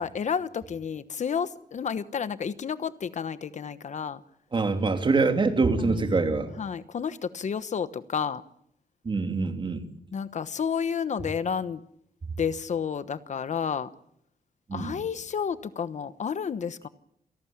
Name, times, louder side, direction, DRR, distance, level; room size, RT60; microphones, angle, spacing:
voice 1, 0.0-4.2 5.8-6.2 6.6-8.4 10.1-11.8 12.4-13.9 14.7-16.9, left 7 dB, 50° left, 13 dB, 1.1 m, -31 dB
voice 2, 4.5-6.5 9.0-9.9 14.7-14.9, right 3 dB, 30° right, 6 dB, 3.0 m, -24 dB
28.5 x 18.5 x 8.8 m, 0.74 s
wide cardioid pair, 150°, 16 cm